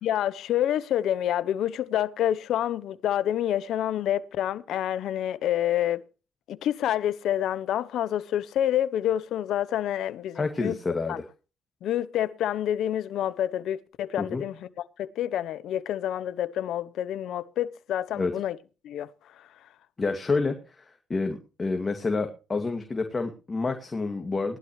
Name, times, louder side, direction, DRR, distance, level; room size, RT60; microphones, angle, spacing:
voice 1, 0.0-6.1 6.5-10.8 11.1-11.2 11.8-14.7 15.0-18.6 18.8-19.1 19.4-19.5, left 11 dB, 75° left, 0.8 m, -28 dB
voice 2, 10.4-11.2 14.2-14.4 18.1-18.3 20.0-24.6, left 3 dB, 30° left, 2.2 m, -29 dB
18.5 x 11.5 x 3.2 m
cardioid pair, 80°, 0 cm